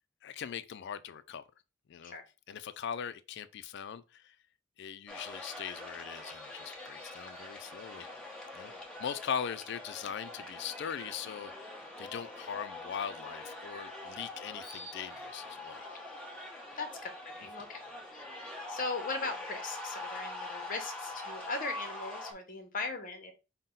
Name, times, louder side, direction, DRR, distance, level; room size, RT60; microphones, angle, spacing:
voice 1, 0.2-1.4 1.9-2.1 2.5-4.4 4.8-8.1 8.5-8.7 9.0-11.7 12.0-15.9, left 8 dB, 60° left, 0.4 m, -40 dB
sound 1, 5.1-22.3, left 2 dB, 5° left, 1.1 m, -44 dB
voice 2, 16.8-17.8 18.1-18.2 18.7-23.3, left 3 dB, 45° left, 1.0 m, -39 dB
5.5 x 2.2 x 3.8 m
head